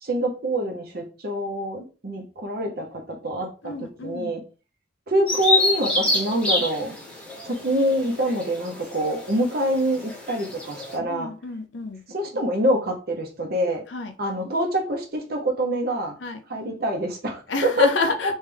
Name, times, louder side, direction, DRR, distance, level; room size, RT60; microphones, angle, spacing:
voice 1, 0.0-4.4 5.1-6.9 7.4-11.3 12.1-13.8 14.2-16.1 16.5-17.9 18.2-18.4, equal, 55° right, 0.8 m, -25 dB
voice 2, 3.6-4.3 11.1-12.0 13.9-14.1 16.2-16.4 17.5-18.4, left 2 dB, 80° left, 0.6 m, -28 dB
Bird vocalization bird call bird song, 5.3-11.0, left 2 dB, 5° left, 1.0 m, -27 dB
3.3 x 3.2 x 3.4 m
head